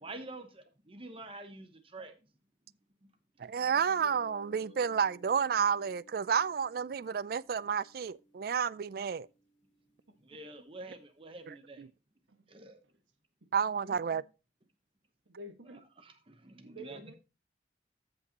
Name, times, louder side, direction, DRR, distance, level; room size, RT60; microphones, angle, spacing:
voice 1, 0.0-2.1 10.3-11.8 12.5-12.8 16.0-17.1, right 2 dB, 30° right, 0.9 m, -47 dB
voice 2, 3.4-9.3 11.5-11.9 13.5-14.2, right 7 dB, 50° right, 0.3 m, -31 dB
sound 1, 3.8-10.4, left 1 dB, 85° left, 2.5 m, -58 dB
voice 3, 10.1-10.7 12.3-13.0 13.8-14.2 15.2-15.8 16.6-17.1, right 1 dB, 90° right, 1.5 m, -51 dB
14.5 x 5.4 x 2.9 m
head